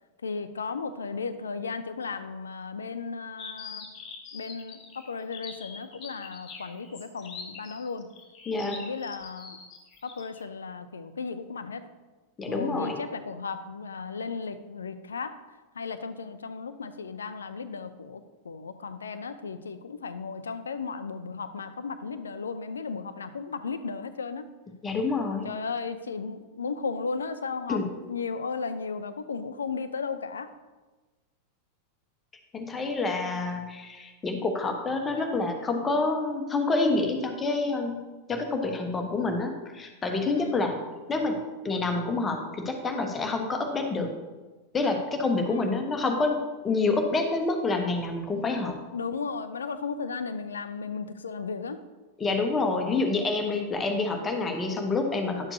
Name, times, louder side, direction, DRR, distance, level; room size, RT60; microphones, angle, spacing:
voice 1, 0.2-3.9 4.3-8.1 8.7-9.6 10.0-11.8 12.5-15.4 15.7-24.5 25.4-27.8 28.1-30.5 40.3-40.7 45.5-45.8 48.9-51.8, left 5 dB, 70° left, 12 dB, 0.5 m, -35 dB
sound 1, 3.4-10.4, left 5 dB, 35° left, 1.6 m, -43 dB
voice 2, 8.5-8.8 12.4-13.0 24.8-25.5 27.7-27.9 32.5-38.0 38.3-40.8 41.1-44.1 44.7-48.8 52.2-55.5, left 3 dB, 20° left, 4 dB, 1.1 m, -28 dB
10.5 x 7.2 x 2.8 m, 1.2 s
figure-of-eight pair, 90°, 0 cm